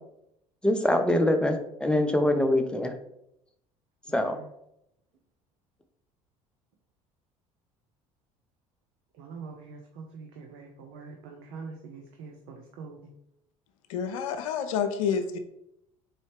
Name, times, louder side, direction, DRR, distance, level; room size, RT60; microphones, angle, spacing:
voice 1, 0.6-2.9 4.1-4.4, left 1 dB, 5° left, 6 dB, 0.5 m, -24 dB
voice 2, 4.1-4.5 9.2-13.1, right 4 dB, 55° right, 2 dB, 0.6 m, -44 dB
voice 3, 13.9-15.4, left 7 dB, 65° left, 9 dB, 0.5 m, -28 dB
4.0 x 3.1 x 3.2 m, 0.79 s
figure-of-eight pair, 60°, 18 cm